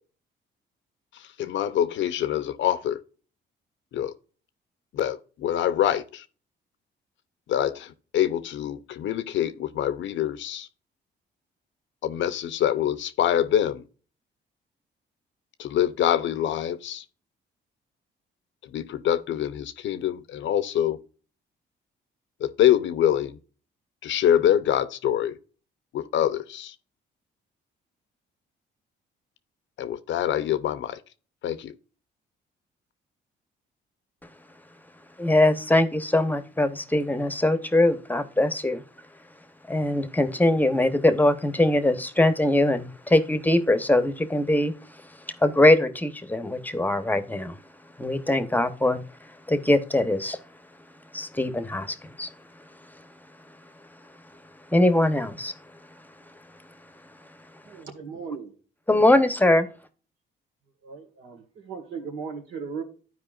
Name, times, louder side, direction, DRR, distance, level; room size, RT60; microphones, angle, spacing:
voice 1, 1.4-3.0 3.9-4.1 4.9-6.2 7.5-10.7 12.0-13.8 15.6-17.0 18.7-21.0 22.4-23.4 24.0-25.4 25.9-26.7 29.8-31.0 31.4-31.7, left 11 dB, 70° left, 0.7 m, -25 dB
voice 2, 35.2-38.8 39.7-44.7 45.4-47.6 48.0-49.0 49.5-50.4 51.1-52.3 54.7-55.5 58.9-59.7, left 1 dB, 10° left, 0.9 m, -22 dB
voice 3, 57.6-58.5 60.8-62.8, right 5 dB, 75° right, 1.9 m, -37 dB
12.5 x 4.8 x 2.4 m
cardioid pair, 90°, 20 cm